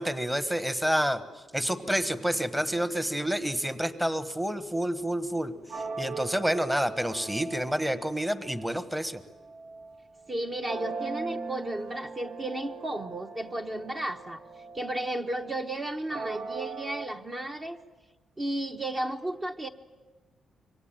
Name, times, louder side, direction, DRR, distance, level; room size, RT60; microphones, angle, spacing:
voice 1, 0.0-9.2, equal, 5° right, 12 dB, 1.2 m, -29 dB
sound 1, 1.6-8.9 9.3-10.3 10.7-17.1, right 4 dB, 80° right, 2.4 m, -41 dB
voice 2, 10.3-14.4 14.7-17.8 18.4-19.7, right 1 dB, 25° right, 5 dB, 1.1 m, -33 dB
27.0 x 23.5 x 9.0 m, 1.2 s
cardioid pair, 130°, 0 cm